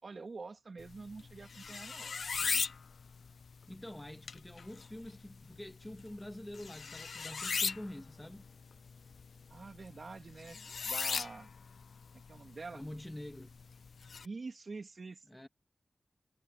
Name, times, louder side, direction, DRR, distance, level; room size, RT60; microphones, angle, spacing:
voice 1, 0.0-2.2 9.5-10.6 10.8-11.5 12.3-12.8 14.2-15.3, right 4 dB, 60° right, 3.2 m, -46 dB
sound 1, 0.8-14.2, left 5 dB, 85° left, 0.3 m, -40 dB
voice 2, 2.3-2.7 3.7-8.4 12.7-13.6 15.3-15.5, left 1 dB, 15° left, 2.0 m, -47 dB
wide cardioid pair, 80°, 0 cm